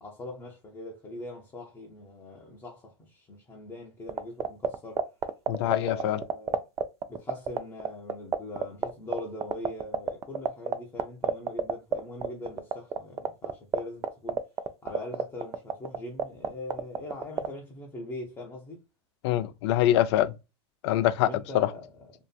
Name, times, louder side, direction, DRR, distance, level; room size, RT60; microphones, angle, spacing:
voice 1, 0.0-5.1 5.6-6.6 7.1-14.4 14.8-18.8 21.2-22.1, left 2 dB, 20° left, 0.7 m, -42 dB
sound 1, 4.1-17.5, right 8 dB, 20° right, 0.3 m, -26 dB
voice 2, 5.5-6.2 19.2-20.3 20.8-21.3 21.5-21.7, left 13 dB, 65° left, 0.4 m, -24 dB
2.8 x 2.4 x 2.2 m
supercardioid pair, 120°, 15 cm